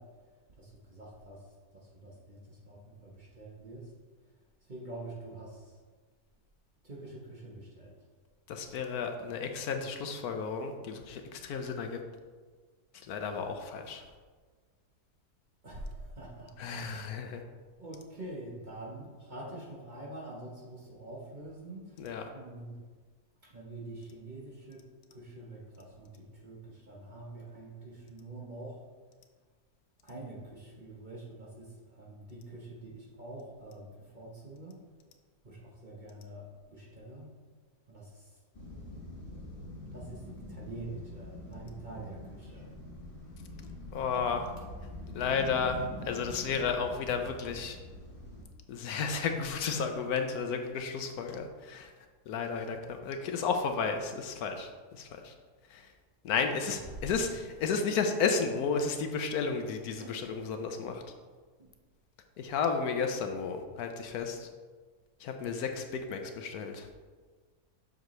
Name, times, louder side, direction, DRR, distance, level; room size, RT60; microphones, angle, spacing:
voice 1, 0.0-3.9 4.2-4.3 4.6-5.8 6.8-8.0 15.6-16.9 17.8-22.0 22.3-22.8 23.4-24.8 25.1-28.8 30.0-34.8 35.4-37.3 37.9-38.4 39.9-42.7 56.7-57.1 60.0-60.4 61.6-61.7, right 2 dB, 35° right, -4 dB, 1.1 m, -46 dB
voice 2, 8.5-12.0 13.0-14.0 16.6-17.4 22.0-22.2 43.9-44.5 45.1-47.8 48.7-51.9 52.3-55.3 55.7-55.9 56.2-61.0 62.4-64.5 65.2-66.9, left 5 dB, 75° left, 5 dB, 1.1 m, -33 dB
sound 1, 38.5-48.4, left 1 dB, 35° left, 1.4 m, -45 dB
7.3 x 6.4 x 3.1 m, 1.4 s
omnidirectional pair, 1.7 m